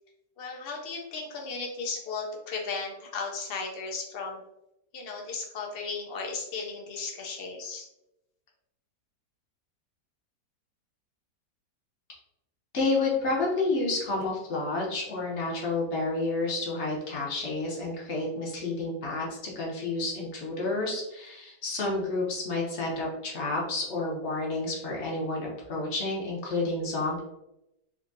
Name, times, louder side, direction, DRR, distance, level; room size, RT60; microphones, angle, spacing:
voice 1, 0.4-4.4 4.9-7.9, left 4 dB, 65° left, 0 dB, 0.5 m, -35 dB
voice 2, 12.7-27.2, left 2 dB, 50° left, -3 dB, 1.0 m, -30 dB
3.5 x 2.7 x 2.6 m, 0.88 s
omnidirectional pair, 1.8 m